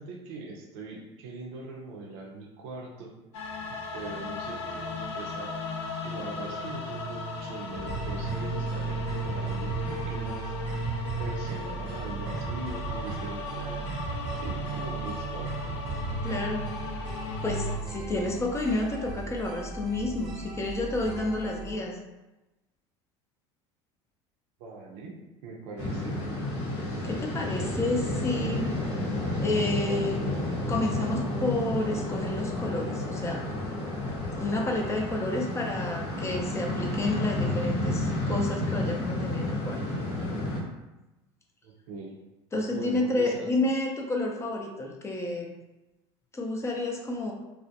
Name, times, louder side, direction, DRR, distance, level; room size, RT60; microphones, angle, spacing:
voice 1, 0.0-3.1 3.7-5.5 6.0-10.5 11.2-13.9 14.4-15.6 24.6-25.1 25.4-26.2 41.6-42.1 42.5-43.5, right 3 dB, 75° right, -1 dB, 0.6 m, -41 dB
sound 1, 3.3-17.8, equal, 90° left, 0.4 m, -34 dB
sound 2, 7.7-21.7, right 2 dB, 30° right, 0.7 m, -38 dB
voice 2, 16.2-16.7 17.4-22.0 27.0-28.8 29.4-30.4 30.7-33.4 34.0-39.8 42.5-45.5 46.3-47.3, left 2 dB, 20° left, 1 dB, 0.5 m, -30 dB
sound 3, 25.8-40.6, left 2 dB, 50° left, 0.8 m, -31 dB
2.3 x 2.1 x 2.7 m, 1.0 s
supercardioid pair, 90°, 15 cm